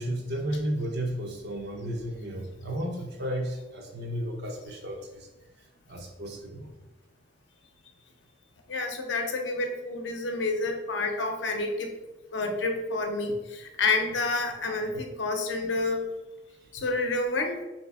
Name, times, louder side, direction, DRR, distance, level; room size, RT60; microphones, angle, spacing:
voice 1, 0.0-5.3 5.9-6.7, right 1 dB, 60° right, 2 dB, 0.7 m, -33 dB
voice 2, 8.7-11.9 12.3-16.0 16.7-17.6, left 3 dB, 65° left, 4 dB, 0.6 m, -29 dB
4.3 x 2.8 x 3.5 m, 1.0 s
head